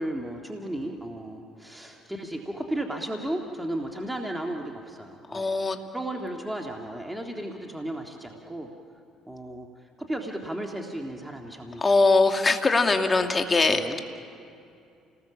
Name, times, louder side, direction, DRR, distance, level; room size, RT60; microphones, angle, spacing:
voice 1, 0.0-5.5 5.9-8.7 9.3-12.0 13.7-14.0, right 1 dB, 10° right, 1 dB, 2.1 m, -34 dB
voice 2, 5.3-5.8 11.8-14.0, left 3 dB, 25° left, 5 dB, 2.0 m, -22 dB
29.0 x 19.5 x 7.2 m, 2.5 s
supercardioid pair, 75°, 0 cm